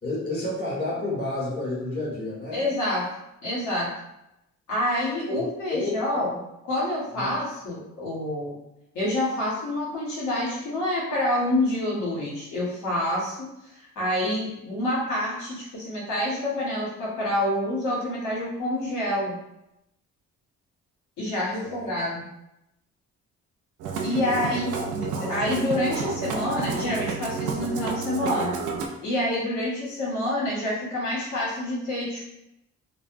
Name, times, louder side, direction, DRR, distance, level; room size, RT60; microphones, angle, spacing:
voice 1, 0.0-2.6 5.3-6.2 7.1-7.3 21.6-21.9 24.3-24.7, left 2 dB, 30° left, -8 dB, 1.5 m, -31 dB
voice 2, 2.5-3.1 3.4-3.9 4.7-6.4 6.6-8.6 8.9-13.5 13.9-19.4 21.2-22.3 24.0-28.5 29.0-32.3, left 1 dB, 75° left, -7 dB, 1.3 m, -27 dB
Musical instrument, 23.8-28.9, right 5 dB, 85° right, 0.4 m, -30 dB
2.5 x 2.1 x 2.6 m, 0.86 s
cardioid pair, 90°, 30 cm